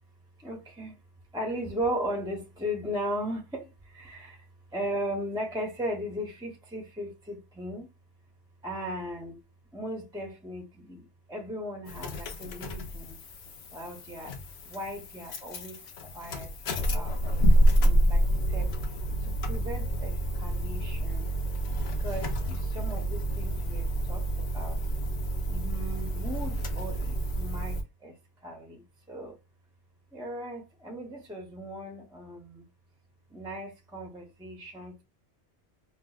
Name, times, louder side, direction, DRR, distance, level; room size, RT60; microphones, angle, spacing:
voice 1, 0.4-1.0 1.3-4.4 4.7-7.9 8.6-9.4 9.7-13.2 13.7-14.3 14.6-16.5 16.9-18.2 18.5-18.7 19.2-21.3 22.0-24.8 25.5-28.2 28.4-29.4 30.1-32.7 33.3-35.0, equal, 5° right, 0.5 m, -37 dB
sound 1, 11.9-27.8, right 1 dB, 70° left, 0.9 m, -28 dB
4.3 x 2.1 x 2.3 m
omnidirectional pair, 1.1 m